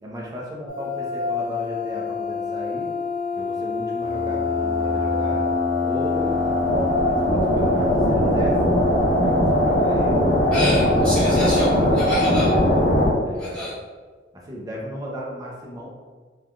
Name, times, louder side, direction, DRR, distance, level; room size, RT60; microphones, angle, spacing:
voice 1, 0.0-2.9 3.3-5.5 5.8-8.6 9.2-10.2 11.3-11.9 13.2-13.6 14.3-15.9, equal, 20° right, -4 dB, 0.5 m, -34 dB
sound 1, 0.7-13.1, left 1 dB, 50° left, 0.5 m, -21 dB
voice 2, 10.5-12.5 13.3-13.7, equal, 5° left, -11 dB, 1.3 m, -27 dB
3.2 x 2.2 x 2.4 m, 1.4 s
head